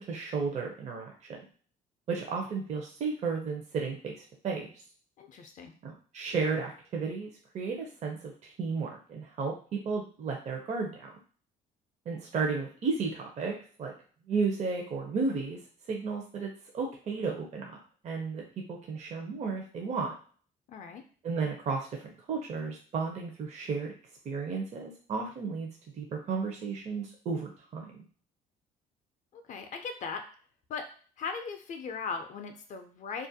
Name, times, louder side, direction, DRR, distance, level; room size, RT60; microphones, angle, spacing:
voice 1, 0.0-1.4 2.1-4.7 5.8-9.5 9.8-11.1 12.1-13.5 13.8-13.9 14.3-15.6 15.9-17.8 18.0-18.4 18.7-20.1 21.2-23.9 24.2-25.7 25.9-28.1, right 4 dB, 45° right, 0 dB, 0.5 m, -33 dB
voice 2, 5.2-5.8 20.7-21.0 29.3-30.2 30.7-30.8 31.2-33.3, left 5 dB, 50° left, 6 dB, 0.4 m, -38 dB
2.4 x 2.1 x 2.6 m, 0.43 s
cardioid pair, 110°, 17 cm